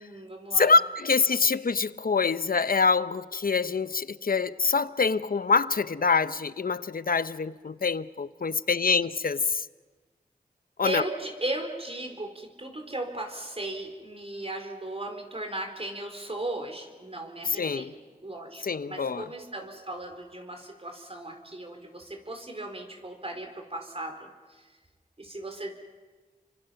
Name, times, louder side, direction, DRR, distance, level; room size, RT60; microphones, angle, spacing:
voice 1, 0.0-0.7 10.8-24.6 25.2-25.7, right 2 dB, 40° right, 4.4 m, -37 dB
voice 2, 0.5-9.6 10.8-11.0 17.5-17.9 18.6-19.2, left 4 dB, 65° left, 0.8 m, -25 dB
29.5 x 25.0 x 5.9 m
cardioid pair, 40°, 16 cm